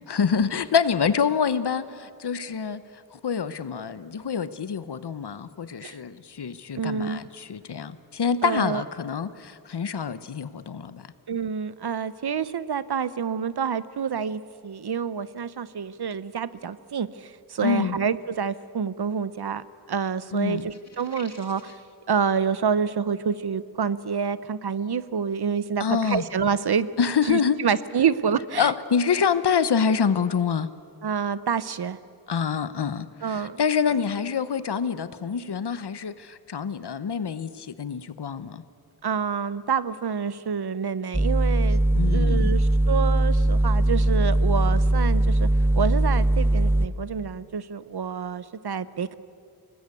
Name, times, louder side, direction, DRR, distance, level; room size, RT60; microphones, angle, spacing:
voice 1, 0.1-2.8 3.1-11.0 17.6-18.0 20.3-20.7 25.8-26.2 27.0-27.6 28.6-30.7 32.3-38.6 41.9-42.5, left 6 dB, 80° left, 14 dB, 1.0 m, -26 dB
voice 2, 6.8-7.2 8.4-8.8 11.3-21.8 22.1-26.9 27.3-28.7 31.0-32.0 33.2-33.6 39.0-45.5 45.8-49.2, right 6 dB, 75° right, 16 dB, 0.8 m, -28 dB
sound 1, 20.5-21.9, left 4 dB, 40° left, 2.6 m, -48 dB
sound 2, 41.1-46.9, right 1 dB, 5° right, 0.8 m, -20 dB
24.5 x 19.5 x 8.4 m, 2.4 s
wide cardioid pair, 70°, 39 cm